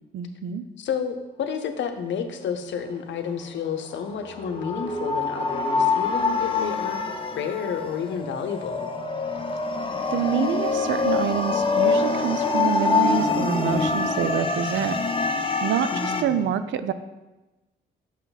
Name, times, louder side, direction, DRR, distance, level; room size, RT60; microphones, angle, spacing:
voice 1, 0.1-0.6 10.1-15.3 15.6-16.9, right 8 dB, 70° right, 12 dB, 0.5 m, -27 dB
voice 2, 0.8-8.9 15.9-16.5, left 7 dB, 65° left, 7 dB, 0.8 m, -31 dB
sound 1, 3.9-16.2, left 4 dB, 25° left, 0.7 m, -25 dB
6.1 x 5.7 x 4.0 m, 1.1 s
cardioid pair, 90°, 20 cm